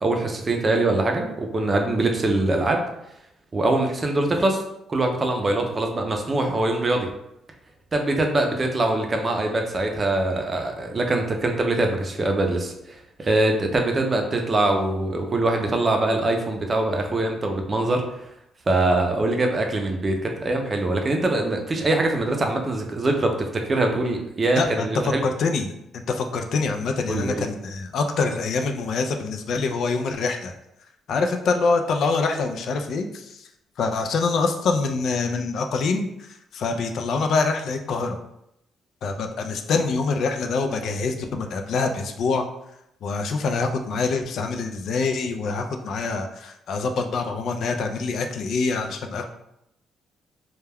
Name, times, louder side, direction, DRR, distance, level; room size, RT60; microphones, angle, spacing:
voice 1, 0.0-2.8 3.5-4.6 4.9-7.1 7.9-18.3 18.7-25.2 27.1-27.4, right 2 dB, 35° right, 3 dB, 0.5 m, -23 dB
voice 2, 24.6-30.5 31.1-33.5 33.8-36.1 36.5-38.2 39.0-42.4 43.0-49.2, left 4 dB, 70° left, 5 dB, 0.3 m, -25 dB
2.2 x 2.2 x 3.3 m, 0.82 s
cardioid pair, 90°, 0 cm